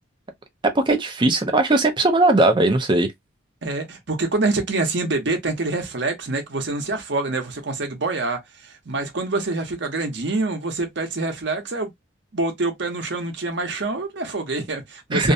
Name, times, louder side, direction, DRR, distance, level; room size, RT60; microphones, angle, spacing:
voice 1, 0.6-3.1 15.1-15.3, right 2 dB, 25° right, 0.5 m, -18 dB
voice 2, 3.6-11.9 12.3-15.3, right 3 dB, 60° right, 0.8 m, -26 dB
2.6 x 2.1 x 2.5 m
head